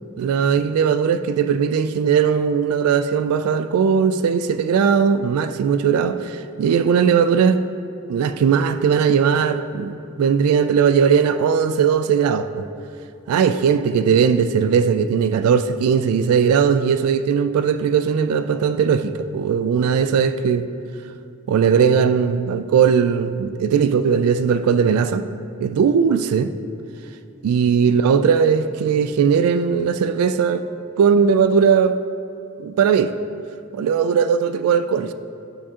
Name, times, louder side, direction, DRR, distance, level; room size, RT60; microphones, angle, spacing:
voice 1, 0.2-7.6 8.1-12.6 13.3-20.7 21.5-25.2 25.6-26.5 27.4-30.6 31.0-32.0 32.6-33.1 33.7-35.1, right 6 dB, 85° right, 14 dB, 0.3 m, -18 dB
9.6 x 7.3 x 2.8 m, 2.7 s
head